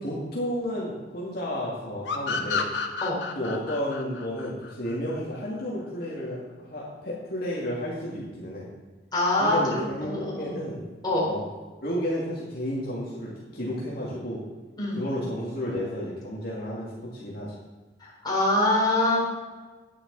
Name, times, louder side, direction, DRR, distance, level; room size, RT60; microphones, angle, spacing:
voice 1, 0.0-2.7 3.4-8.7 9.4-10.8 11.2-11.4 11.8-14.4 15.0-17.5, equal, 55° left, -6 dB, 2.2 m, -32 dB
sound 1, 2.1-5.4, left 5 dB, 75° left, 1.0 m, -31 dB
voice 2, 9.1-10.6 11.0-11.3 14.8-15.0 18.0-19.2, left 1 dB, 25° left, -5 dB, 3.9 m, -24 dB
9.9 x 9.6 x 4.0 m, 1.3 s
head